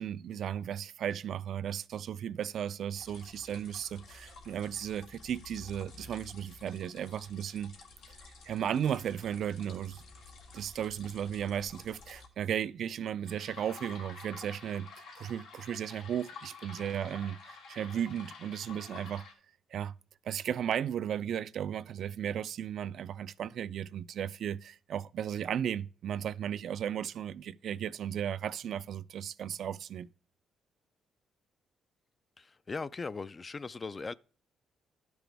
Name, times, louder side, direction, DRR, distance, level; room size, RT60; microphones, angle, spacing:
voice 1, 0.0-7.7 8.4-10.0 10.5-19.3 19.7-19.9 20.2-30.1, right 9 dB, 65° right, 0.3 m, -35 dB
sound 1, 3.0-12.3 13.3-19.3, left 4 dB, 90° left, 1.7 m, -51 dB
voice 2, 32.4-34.1, left 4 dB, 30° left, 0.3 m, -39 dB
12.5 x 6.1 x 3.4 m
cardioid pair, 90°, 0 cm